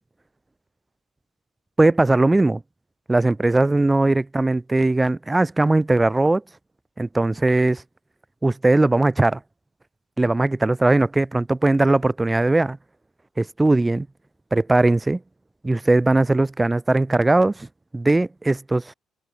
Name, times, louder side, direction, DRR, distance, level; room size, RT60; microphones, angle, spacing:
voice 1, 1.8-2.6 3.1-6.4 7.0-7.8 8.4-9.4 10.2-12.8 13.4-14.1 14.5-15.2 15.6-17.7 17.9-18.8, right 2 dB, 15° right, 6.1 m, -19 dB
cardioid pair, 90°, 0 cm